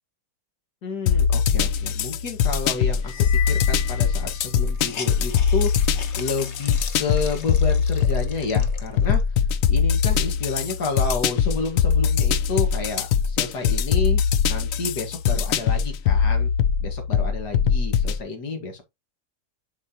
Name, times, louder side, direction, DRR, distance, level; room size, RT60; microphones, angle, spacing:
voice 1, 0.8-9.2 9.7-16.5 16.8-18.8, left 4 dB, 90° left, 2.4 m, -30 dB
sound 1, 1.1-18.2, left 7 dB, 65° left, 0.9 m, -22 dB
sound 2, 3.0-4.9, left 12 dB, 30° left, 1.4 m, -35 dB
Hiss, 3.5-3.6 3.8-3.9 4.3-9.4 9.9-10.0 10.4-11.8, left 6 dB, 50° left, 1.2 m, -41 dB
11.0 x 4.2 x 2.9 m
omnidirectional pair, 1.7 m